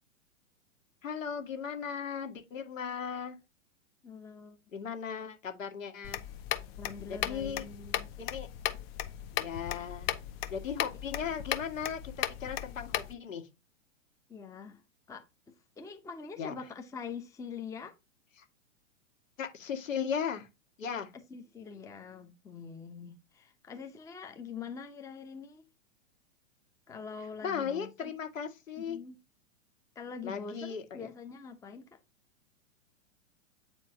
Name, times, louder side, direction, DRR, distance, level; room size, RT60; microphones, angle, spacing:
voice 1, 1.0-3.4 4.7-6.3 7.1-7.6 8.2-8.5 9.3-10.1 10.5-13.5 16.4-16.5 18.4-18.5 19.4-20.5 20.8-21.1 27.4-29.0 30.2-31.1, left 7 dB, 75° left, 1.9 m, -37 dB
voice 2, 4.0-4.6 6.8-8.1 14.3-14.8 15.1-15.3 15.8-17.9 21.3-25.6 26.9-28.1 28.8-29.2 30.0-32.0, left 5 dB, 10° left, 0.7 m, -44 dB
sound 1, 6.0-13.1, left 12 dB, 50° left, 1.1 m, -37 dB
8.5 x 4.5 x 2.7 m
hypercardioid pair, 115°, 39 cm